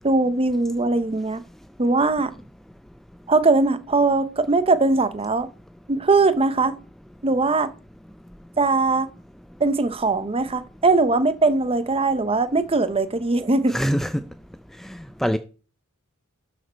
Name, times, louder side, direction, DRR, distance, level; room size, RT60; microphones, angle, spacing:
voice 1, 0.0-1.4 1.8-2.3 3.3-5.5 5.9-6.7 7.2-7.7 8.6-9.1 9.6-13.8, right 3 dB, 25° right, 0.7 m, -20 dB
voice 2, 13.7-14.2 14.8-15.4, equal, ahead, 0.4 m, -24 dB
12.5 x 5.1 x 4.5 m
head